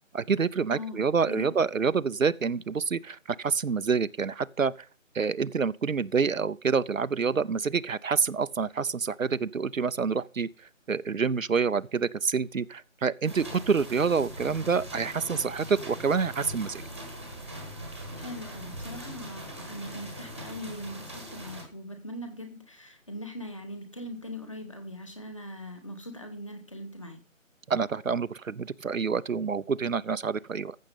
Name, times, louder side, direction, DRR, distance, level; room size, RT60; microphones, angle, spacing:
voice 1, 0.1-4.7 5.1-10.5 10.9-16.8 27.7-30.8, right 5 dB, 80° right, 0.6 m, -27 dB
voice 2, 0.7-1.6 18.2-27.2, left 1 dB, 25° left, 1.4 m, -41 dB
sound 1, 13.3-21.6, equal, 10° right, 1.2 m, -41 dB
14.5 x 6.6 x 5.5 m
figure-of-eight pair, 160°, 40 cm